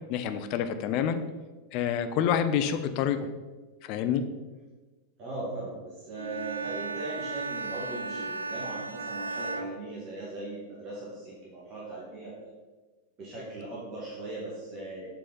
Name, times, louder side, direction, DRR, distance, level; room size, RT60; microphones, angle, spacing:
voice 1, 0.1-1.2 1.7-3.3 3.9-4.2, left 8 dB, 40° left, 9 dB, 0.5 m, -27 dB
voice 2, 5.2-12.3 13.2-15.1, right 2 dB, 35° right, -6 dB, 1.6 m, -39 dB
Bowed string instrument, 6.1-10.6, right 3 dB, 75° right, 0.4 m, -36 dB
7.3 x 4.2 x 3.9 m, 1.3 s
figure-of-eight pair, 90°, 0 cm